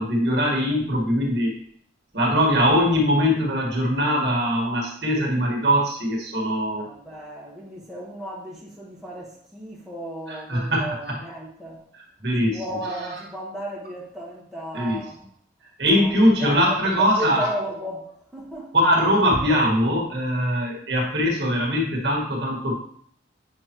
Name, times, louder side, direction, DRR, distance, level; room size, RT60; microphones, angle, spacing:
voice 1, 0.0-1.5 2.1-6.8 10.3-11.2 12.2-12.6 14.7-15.0 15.8-17.5 18.7-22.7, equal, 60° right, -1 dB, 1.9 m, -21 dB
voice 2, 6.8-11.8 12.4-15.2 15.9-18.7, equal, ahead, -6 dB, 1.4 m, -34 dB
8.8 x 5.3 x 3.1 m, 0.63 s
head